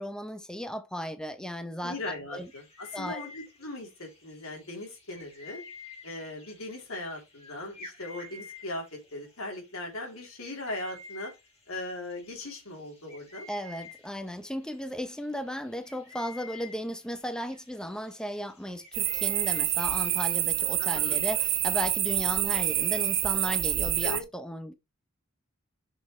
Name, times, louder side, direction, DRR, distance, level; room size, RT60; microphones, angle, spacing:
voice 1, 0.0-2.0 2.3-2.5 2.9-3.3 13.5-24.7, equal, 5° left, 0.6 m, -35 dB
voice 2, 1.8-5.6 6.0-11.3 11.7-13.5 20.8-21.2 24.0-24.2, left 2 dB, 80° left, 3.2 m, -39 dB
sound 1, 2.3-20.3, left 4 dB, 30° left, 2.4 m, -50 dB
sound 2, 18.9-24.2, right 14 dB, 60° right, 0.9 m, -27 dB
7.0 x 6.3 x 3.2 m
head